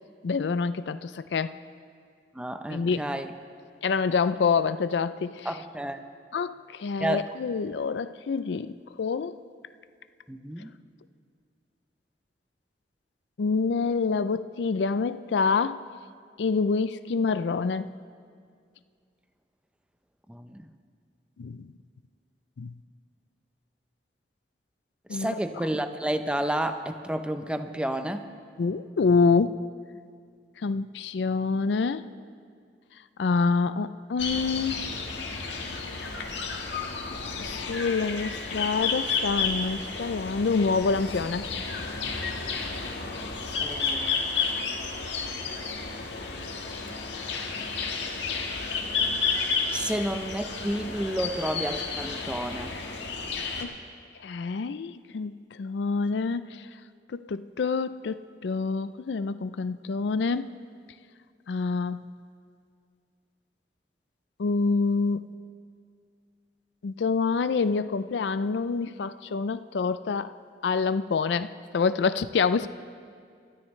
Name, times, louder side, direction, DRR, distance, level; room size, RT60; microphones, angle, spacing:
voice 1, 0.2-1.5 2.7-3.1 3.8-5.5 6.3-8.7 9.0-9.4 13.4-15.8 16.4-18.0 21.4-21.7 22.6-22.7 25.1-25.3 28.6-29.6 30.6-32.0 33.2-34.8 37.4-41.4 53.6-53.7 54.2-56.6 57.1-60.5 61.5-62.1 64.4-65.2 66.8-70.3 70.6-72.7, left 4 dB, 70° left, 13 dB, 0.4 m, -27 dB
voice 2, 2.3-3.3 5.4-6.0 7.0-7.3 10.3-10.7 20.3-20.6 25.1-28.3 43.6-44.3 49.7-52.8, right 1 dB, 5° right, 8 dB, 0.6 m, -31 dB
sound 1, 34.2-53.6, left 5 dB, 90° left, 1.5 m, -31 dB
24.5 x 13.0 x 3.2 m, 2.1 s
head